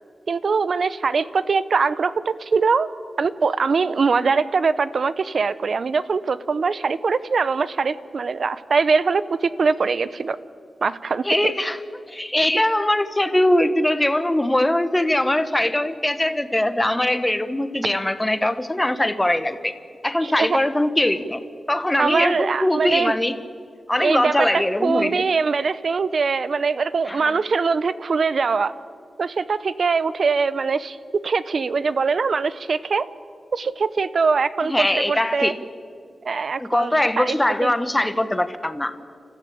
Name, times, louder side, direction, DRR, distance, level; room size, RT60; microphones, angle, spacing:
voice 1, 0.3-2.9 3.2-10.4 10.8-11.3 20.2-20.6 22.0-23.1 24.0-28.7 29.2-33.1 33.5-35.5 36.2-37.7, right 5 dB, 55° right, 16 dB, 0.8 m, -22 dB
voice 2, 11.2-11.8 12.1-19.7 20.0-21.4 21.7-23.4 23.9-25.2 27.1-27.3 34.7-35.6 36.6-38.9, left 1 dB, 10° left, 11 dB, 1.1 m, -21 dB
29.5 x 14.5 x 8.7 m, 2.4 s
wide cardioid pair, 140°, 0 cm